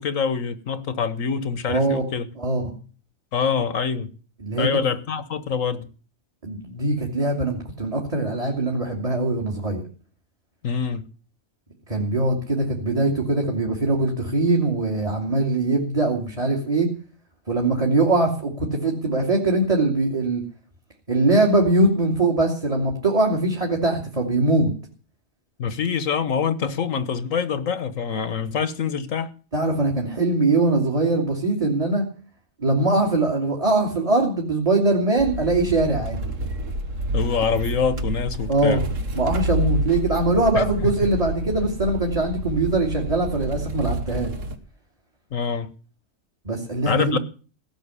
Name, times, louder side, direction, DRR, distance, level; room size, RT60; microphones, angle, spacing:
voice 1, 0.0-2.3 3.3-4.1 4.6-5.9 10.6-11.0 25.6-29.3 37.1-38.8 40.5-40.6 45.3-45.7 46.8-47.2, left 6 dB, 75° left, 1.6 m, -25 dB
voice 2, 1.7-2.1 2.4-2.6 4.4-4.7 6.4-9.8 11.9-16.9 17.5-20.4 21.1-24.7 29.5-32.0 32.6-36.2 38.5-38.8 39.2-44.3 46.4-47.2, right 2 dB, 25° right, 2.7 m, -22 dB
Automovil viejo, 35.2-44.6, right 1 dB, 65° right, 1.8 m, -29 dB
17.5 x 6.5 x 9.8 m
omnidirectional pair, 1.4 m